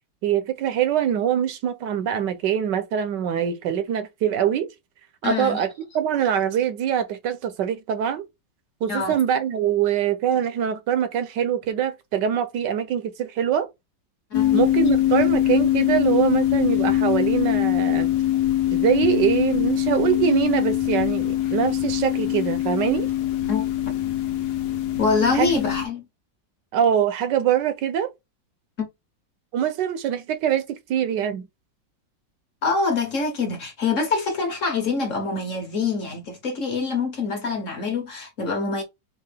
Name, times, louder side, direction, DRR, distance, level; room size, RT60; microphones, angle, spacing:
voice 1, 0.2-4.7 5.2-5.7 5.9-8.3 8.8-13.7 14.5-18.1 18.7-23.1 25.3-25.5 26.7-28.1 29.5-31.5, right 9 dB, 70° right, 1.3 m, -23 dB
voice 2, 5.2-5.6 8.9-9.2 14.3-14.6 23.5-23.6 25.0-26.0 28.8-28.9 32.6-38.8, left 4 dB, 45° left, 1.3 m, -25 dB
sound 1, 14.3-25.9, left 13 dB, 65° left, 1.2 m, -22 dB
4.7 x 2.8 x 3.4 m
omnidirectional pair, 2.0 m